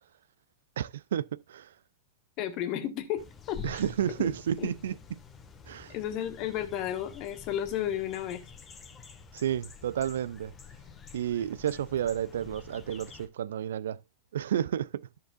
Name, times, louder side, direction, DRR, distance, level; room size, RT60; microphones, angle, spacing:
voice 1, 0.8-1.7 3.6-5.2 5.7-6.0 9.3-10.5 11.1-14.0 14.3-15.1, right 10 dB, 70° right, 0.4 m, -31 dB
voice 2, 2.4-3.8 4.2-4.3 4.6-4.7 5.9-8.4, left 11 dB, 45° left, 1.6 m, -33 dB
sound 1, 3.2-13.3, left 6 dB, 25° left, 1.5 m, -48 dB
13.5 x 6.7 x 2.4 m
figure-of-eight pair, 95°, 0 cm